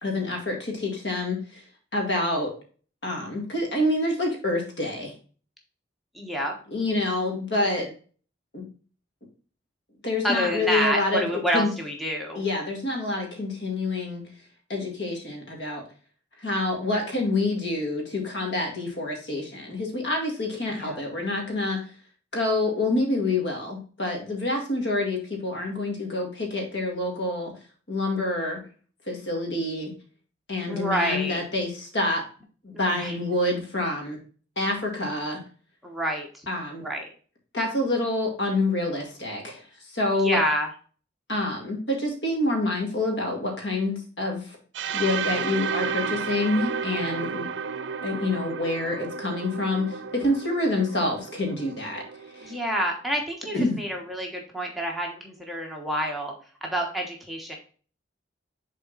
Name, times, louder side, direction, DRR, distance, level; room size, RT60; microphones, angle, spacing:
voice 1, 0.0-1.6 1.9-2.5 3.0-5.1 6.7-7.9 8.5-8.6 10.0-11.7 12.4-14.2 14.7-15.8 16.4-21.8 22.3-27.5 27.9-28.6 29.1-29.9 30.5-32.2 32.6-34.2 34.6-35.4 36.5-36.9 37.5-39.6 39.9-40.4 41.3-44.6 44.9-47.5 48.0-52.0 52.4-52.6 53.5-53.8, left 2 dB, 70° left, 1 dB, 2.2 m, -27 dB
voice 2, 6.1-6.5 7.7-7.9 10.2-12.4 20.8-21.0 30.7-31.4 32.7-33.2 35.8-36.3 36.8-37.1 40.1-40.7 52.4-56.3 56.6-57.6, equal, ahead, -1 dB, 1.2 m, -28 dB
sound 1, 44.7-52.6, right 6 dB, 80° right, 0.5 m, -32 dB
6.7 x 4.2 x 4.0 m, 0.40 s
head